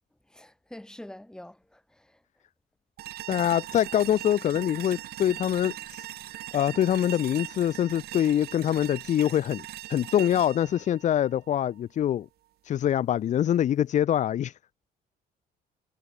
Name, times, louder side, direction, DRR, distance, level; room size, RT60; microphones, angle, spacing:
voice 1, 0.3-2.1, left 1 dB, 5° left, 1.8 m, -45 dB
sound 1, 3.0-12.0, right 14 dB, 70° right, 1.3 m, -40 dB
voice 2, 3.3-6.1 6.5-9.6 9.9-12.3 12.6-14.5, left 10 dB, 45° left, 0.6 m, -24 dB
cardioid pair, 110°, 17 cm